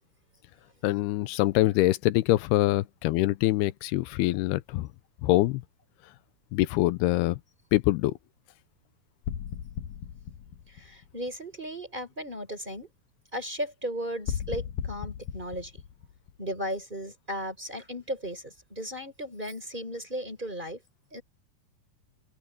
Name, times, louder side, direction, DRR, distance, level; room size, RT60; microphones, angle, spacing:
voice 1, 0.8-4.9 5.2-5.6 6.5-7.4 7.7-8.2, left 17 dB, 85° left, 2.6 m, -24 dB
sound 1, 9.2-11.5 14.3-16.8, left 8 dB, 65° left, 2.3 m, -36 dB
voice 2, 10.7-12.9 13.3-15.7 16.4-20.8 21.1-21.2, equal, 10° right, 4.2 m, -36 dB
open air
omnidirectional pair, 4.5 m